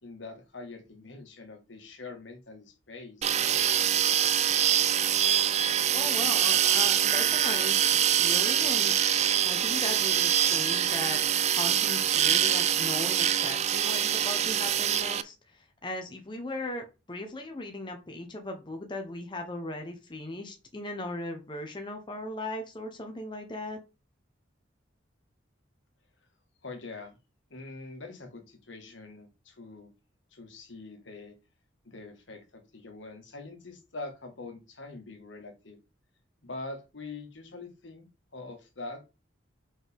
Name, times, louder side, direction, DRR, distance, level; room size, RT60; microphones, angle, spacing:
voice 1, 0.0-3.6 26.6-27.2 27.5-29.9 30.3-31.3 31.8-35.8 36.4-38.1 38.3-39.1, left 3 dB, 70° left, 4 dB, 1.7 m, -44 dB
sound 1, 3.2-15.2, right 10 dB, 35° right, 0.4 m, -25 dB
voice 2, 5.9-8.9 9.4-23.8, left 2 dB, 25° left, 3 dB, 0.9 m, -38 dB
5.5 x 4.9 x 3.5 m, 0.29 s
head